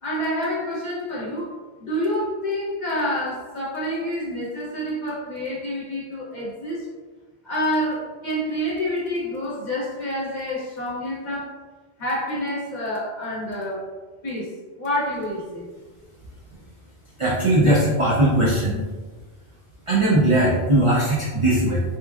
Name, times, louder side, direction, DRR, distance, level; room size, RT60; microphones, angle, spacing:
voice 1, 0.0-1.5 1.8-6.9 7.4-11.5 12.0-13.9 14.2-15.7, equal, 45° left, -7 dB, 0.9 m, -28 dB
voice 2, 17.2-18.8 19.9-21.8, right 1 dB, 50° right, -6 dB, 0.3 m, -19 dB
3.0 x 2.2 x 2.3 m, 1.3 s
omnidirectional pair, 1.1 m